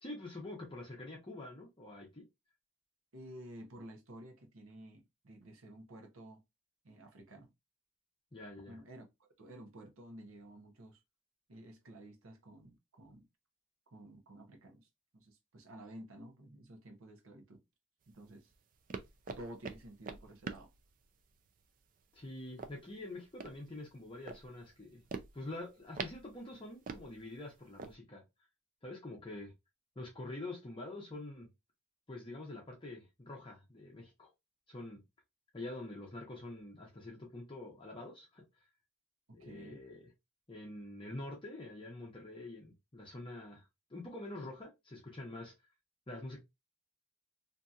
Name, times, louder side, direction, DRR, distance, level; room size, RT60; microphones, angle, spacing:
voice 1, 0.0-2.2 8.3-8.8 22.1-25.0 25.3-28.2 28.8-29.5 30.0-31.5 32.1-34.3 34.7-35.0 35.5-38.4 39.3-40.1 40.5-43.6 43.9-45.5 46.1-46.4, left 2 dB, 20° left, 0.7 m, -46 dB
voice 2, 3.1-6.4 6.8-7.5 8.7-11.0 11.5-13.3 13.9-14.9 15.1-17.6 18.1-18.5 19.4-20.7 39.4-39.8, right 1 dB, 65° right, 0.7 m, -52 dB
sound 1, 18.0-27.9, right 4 dB, 35° right, 0.3 m, -47 dB
2.7 x 2.6 x 2.3 m
head